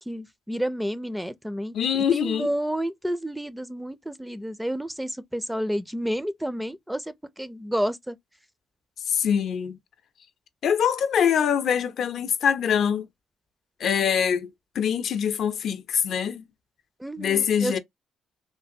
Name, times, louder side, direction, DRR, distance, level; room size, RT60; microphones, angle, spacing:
voice 1, 0.1-1.7 2.1-8.2 17.0-17.8, equal, 5° right, 0.4 m, -30 dB
voice 2, 1.7-2.5 9.1-9.8 10.6-13.1 13.8-16.5 17.2-17.8, left 8 dB, 65° left, 0.5 m, -24 dB
3.2 x 2.5 x 2.6 m
cardioid pair, 90°, 0 cm